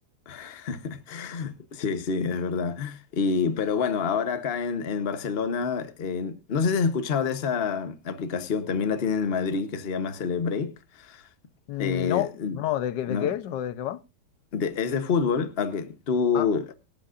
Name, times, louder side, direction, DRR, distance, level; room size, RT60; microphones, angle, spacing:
voice 1, 0.3-11.2 11.8-12.6 13.1-13.3 14.5-16.7, left 5 dB, 40° left, 1.2 m, -27 dB
voice 2, 11.7-14.0 16.3-16.5, left 12 dB, 90° left, 1.4 m, -29 dB
24.0 x 8.6 x 2.5 m
omnidirectional pair, 1.8 m